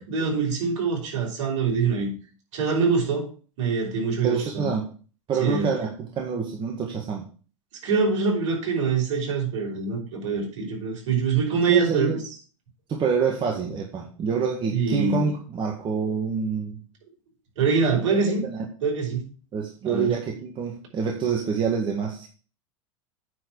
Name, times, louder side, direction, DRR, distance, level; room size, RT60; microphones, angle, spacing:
voice 1, 0.1-2.2 2.5-3.3 3.6-4.7 5.4-5.7 7.8-12.2 14.7-15.3 17.6-18.4 18.8-19.2 19.8-20.1, right 5 dB, 70° right, -1 dB, 5.3 m, -24 dB
voice 2, 4.2-4.8 5.3-7.2 11.7-12.2 12.9-16.8 18.1-18.6 19.5-22.3, right 6 dB, 30° right, 0 dB, 1.8 m, -27 dB
9.3 x 4.7 x 6.4 m, 0.39 s
hypercardioid pair, 110°, 16 cm